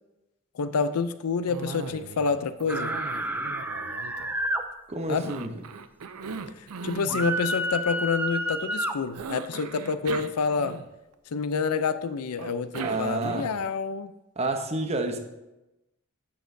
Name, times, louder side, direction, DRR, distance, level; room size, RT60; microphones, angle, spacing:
voice 1, 0.5-2.9 5.1-5.3 6.6-10.8 11.3-14.1, left 5 dB, 85° left, 12 dB, 0.5 m, -28 dB
Cough, 1.5-2.3 2.6-4.7 5.2-7.2 9.1-11.1 12.4-13.7, right 5 dB, 90° right, 0.5 m, -39 dB
sound 1, 2.7-4.6 7.1-9.0, right 1 dB, 10° right, 0.5 m, -29 dB
voice 2, 4.9-5.5 7.1-7.2 12.8-13.5 14.4-15.2, right 2 dB, 30° right, 5 dB, 0.8 m, -29 dB
10.0 x 7.1 x 2.7 m, 0.97 s
head